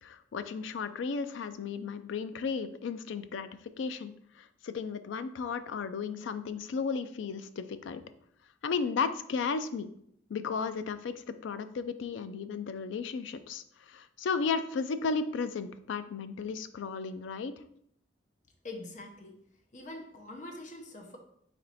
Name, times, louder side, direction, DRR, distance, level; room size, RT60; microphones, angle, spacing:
voice 1, 0.0-3.5 3.8-8.0 8.6-9.9 10.3-17.5, left 5 dB, 75° left, 11 dB, 0.3 m, -34 dB
voice 2, 18.6-19.4 19.7-21.2, left 2 dB, 40° left, 3 dB, 0.6 m, -44 dB
4.3 x 3.1 x 4.0 m, 0.70 s
head